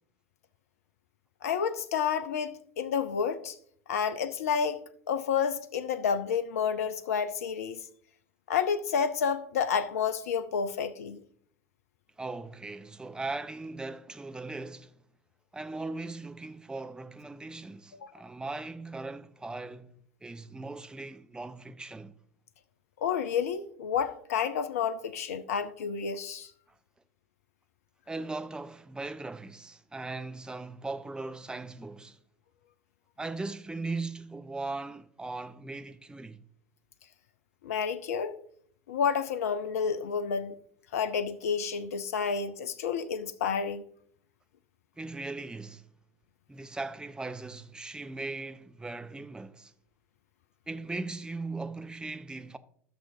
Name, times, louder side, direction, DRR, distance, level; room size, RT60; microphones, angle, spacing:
voice 1, 1.4-3.6 3.9-7.8 8.5-11.2 18.0-18.1 23.0-26.5 37.6-38.3 38.9-40.5 40.9-43.8, left 6 dB, 70° left, 0.6 m, -30 dB
voice 2, 12.2-14.9 15.5-19.9 20.2-22.2 28.1-32.2 33.2-36.4 45.0-45.9 46.5-49.7 50.7-52.6, right 3 dB, 10° right, 0.6 m, -39 dB
14.5 x 6.4 x 2.7 m
figure-of-eight pair, 70°, 8 cm